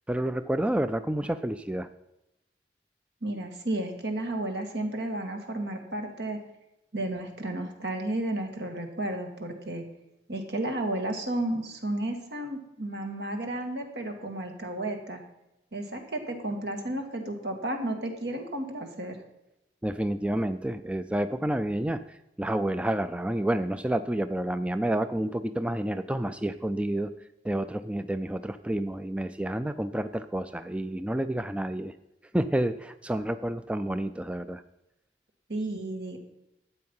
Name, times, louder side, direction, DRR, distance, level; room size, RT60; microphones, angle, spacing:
voice 1, 0.1-1.9 19.8-27.1 27.4-31.9 32.3-34.6, right 1 dB, 5° right, 11 dB, 0.3 m, -29 dB
voice 2, 3.2-6.4 6.9-9.8 10.3-15.2 15.7-19.2 35.5-36.2, right 1 dB, 75° right, 4 dB, 1.9 m, -32 dB
12.5 x 8.6 x 5.5 m, 0.91 s
head